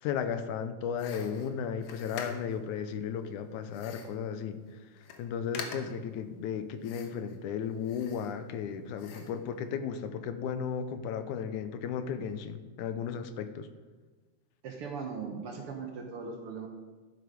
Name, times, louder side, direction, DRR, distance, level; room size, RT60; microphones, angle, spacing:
voice 1, 0.0-4.6 5.2-13.7, left 7 dB, 85° left, 10 dB, 2.1 m, -35 dB
sound 1, 1.0-2.7 3.7-4.2 4.7-4.8 5.0-5.2 5.5-6.1 6.8-7.4 7.8-8.6 9.0-9.4, left 5 dB, 70° left, 2.2 m, -44 dB
voice 2, 14.6-16.7, right 5 dB, 60° right, 1 dB, 1.6 m, -39 dB
12.0 x 7.9 x 5.1 m, 1.3 s
omnidirectional pair, 3.5 m